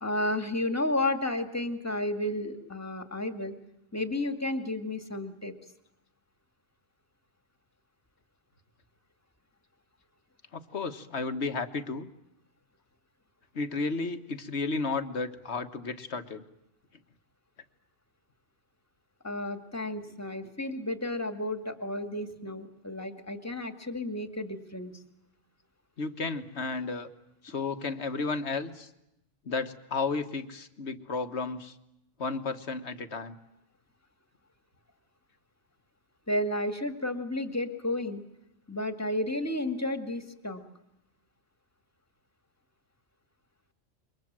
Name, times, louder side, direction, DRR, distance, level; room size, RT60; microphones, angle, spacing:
voice 1, 0.0-3.6 3.9-5.5 19.2-25.0 36.3-38.2 38.7-40.6, left 1 dB, 15° left, 7 dB, 2.1 m, -32 dB
voice 2, 10.5-12.1 13.5-16.4 26.0-27.1 27.4-28.9 29.5-31.8 32.2-33.4, left 4 dB, 65° left, 9 dB, 1.8 m, -33 dB
28.0 x 24.0 x 7.5 m, 0.83 s
omnidirectional pair, 1.3 m